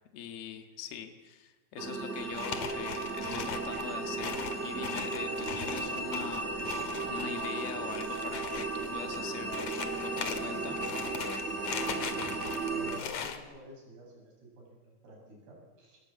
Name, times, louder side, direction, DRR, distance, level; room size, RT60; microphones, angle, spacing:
voice 1, 0.1-10.8, left 8 dB, 75° left, 6 dB, 3.6 m, -43 dB
sound 1, 1.8-13.0, right 3 dB, 60° right, 0.7 m, -35 dB
sound 2, 2.2-13.4, left 7 dB, 50° left, 2.6 m, -40 dB
voice 2, 11.7-12.1 12.6-16.0, right 1 dB, 80° right, 0 dB, 9.7 m, -50 dB
27.0 x 20.0 x 8.6 m, 1.2 s
omnidirectional pair, 4.5 m